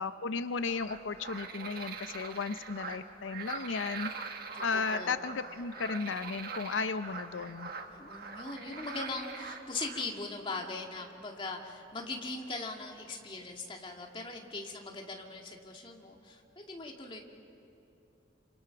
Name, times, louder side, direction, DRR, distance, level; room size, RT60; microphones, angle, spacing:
voice 1, 0.0-4.1 4.6-7.7, left 4 dB, 85° left, 11 dB, 0.6 m, -34 dB
sound 1, 0.6-10.0, right 4 dB, 50° right, 1.5 m, -43 dB
voice 2, 4.5-5.1 7.9-17.3, left 3 dB, 25° left, 1 dB, 2.1 m, -40 dB
27.5 x 27.0 x 5.9 m, 2.9 s
head